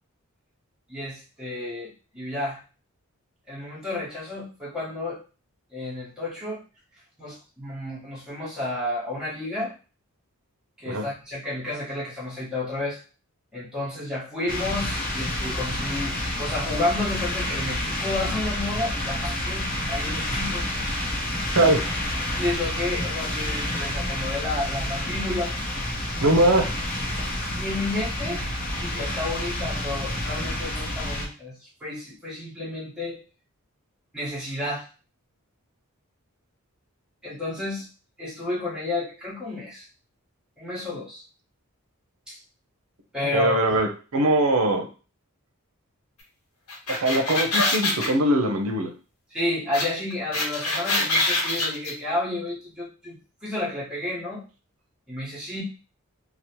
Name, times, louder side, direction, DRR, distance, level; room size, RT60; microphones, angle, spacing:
voice 1, 0.9-2.6 3.5-5.2 5.7-6.6 7.2-9.7 10.8-13.0 13.5-20.7 22.3-25.6 27.6-28.4 28.8-33.2 34.1-34.9 37.2-37.9 38.2-39.9 40.6-41.2 42.3-42.4 43.1-43.8 49.3-54.4 55.1-55.6, left 2 dB, 5° right, -9 dB, 1.1 m, -31 dB
sound 1, 14.5-31.3, left 1 dB, 40° left, 0.6 m, -29 dB
voice 2, 26.2-26.6 27.4-27.5 43.2-44.9 46.9-48.9, right 1 dB, 75° right, 4 dB, 0.6 m, -21 dB
sound 2, 46.7-48.1 49.7-49.8 50.1-51.9, left 2 dB, 85° left, 0.9 m, -24 dB
2.9 x 2.0 x 2.9 m, 0.35 s
head